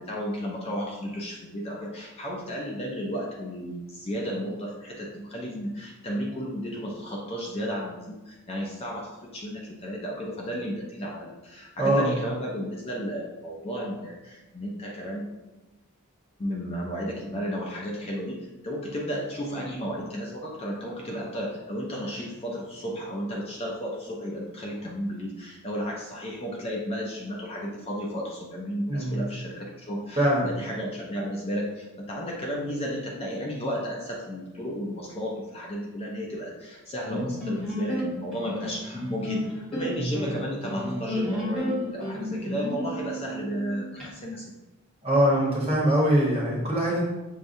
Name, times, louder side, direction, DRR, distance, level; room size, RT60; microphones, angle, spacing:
voice 1, 0.0-15.3 16.4-44.6, equal, 25° left, -2 dB, 0.5 m, -33 dB
voice 2, 11.8-12.1 28.9-29.3 30.2-30.5 40.0-40.1 45.0-47.0, right 1 dB, 25° right, -5 dB, 1.0 m, -23 dB
sound 1, 37.1-44.1, equal, 5° left, 0.9 m, -32 dB
6.3 x 2.2 x 2.6 m, 1.1 s
head